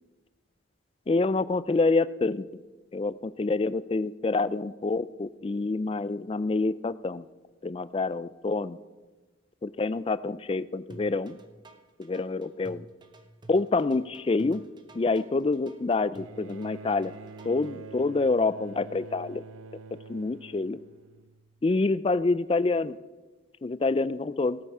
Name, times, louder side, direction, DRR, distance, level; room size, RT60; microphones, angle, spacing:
voice 1, 1.1-2.6 2.9-7.2 7.6-8.8 9.6-11.4 12.0-12.9 13.5-14.6 14.9-17.1 17.4-19.5 20.1-20.8 21.6-23.0 23.6-24.6, left 3 dB, 25° left, 16 dB, 0.3 m, -27 dB
sound 1, 10.9-17.7, right 2 dB, 20° right, 0.8 m, -50 dB
Bowed string instrument, 16.1-21.6 22.7-22.8, right 3 dB, 85° right, 0.5 m, -46 dB
17.5 x 8.8 x 4.8 m, 1.2 s
head